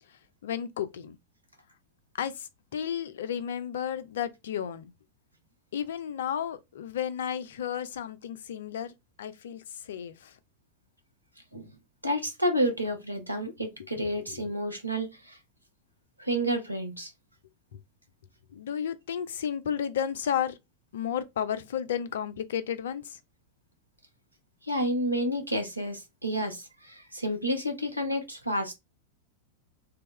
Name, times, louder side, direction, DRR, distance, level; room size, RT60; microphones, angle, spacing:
voice 1, 0.4-1.2 2.2-4.9 5.7-10.4 14.3-14.4 17.7-17.8 18.5-20.6 20.9-23.2, left 9 dB, 60° left, 0.4 m, -33 dB
voice 2, 12.0-15.4 16.2-17.1 24.6-28.8, equal, 85° right, 0.8 m, -30 dB
3.4 x 2.2 x 3.0 m
figure-of-eight pair, 90°, 0 cm